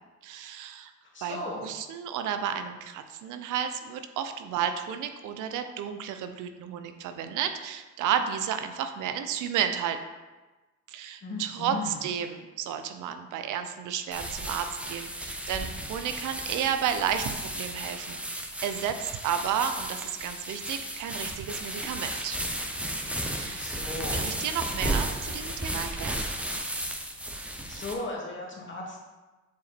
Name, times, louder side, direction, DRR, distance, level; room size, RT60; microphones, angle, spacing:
voice 1, 0.2-0.9 1.2-10.0 10.9-22.4 23.3-23.8 24.1-26.2, right 8 dB, 90° right, 8 dB, 0.7 m, -32 dB
voice 2, 1.1-1.6 11.2-12.0 23.4-24.2 27.7-29.0, left 2 dB, 40° left, -3 dB, 2.3 m, -36 dB
sound 1, 14.1-27.9, right 1 dB, 5° right, 1.0 m, -34 dB
7.1 x 4.9 x 4.4 m, 1.2 s
cardioid pair, 90°, 30 cm